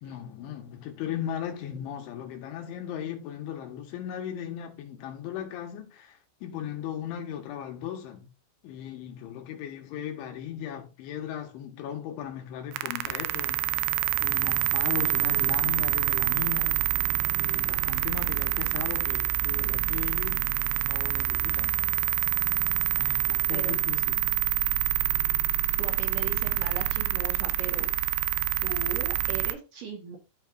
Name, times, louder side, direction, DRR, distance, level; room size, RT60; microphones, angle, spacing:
voice 1, 0.0-8.3 8.6-13.7 14.2-16.9 17.4-21.7 23.0-24.3, left 10 dB, 85° left, 4.0 m, -37 dB
sound 1, 12.7-29.5, right 15 dB, 85° right, 2.9 m, -26 dB
voice 2, 25.8-27.9 28.6-30.2, right 5 dB, 55° right, 2.9 m, -38 dB
13.0 x 4.8 x 2.7 m
omnidirectional pair, 5.3 m